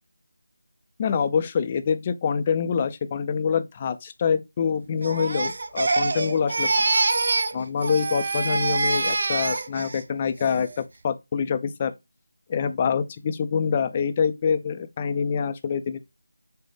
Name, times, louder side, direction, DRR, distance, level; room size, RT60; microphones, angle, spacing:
voice 1, 1.0-6.9 7.5-11.9 12.5-16.0, left 6 dB, 25° left, 0.4 m, -25 dB
Crying sobbing, 5.0-7.6 7.8-10.0 10.4-10.8, right 3 dB, 45° right, 0.4 m, -25 dB
6.1 x 2.1 x 3.2 m
figure-of-eight pair, 165°, 0 cm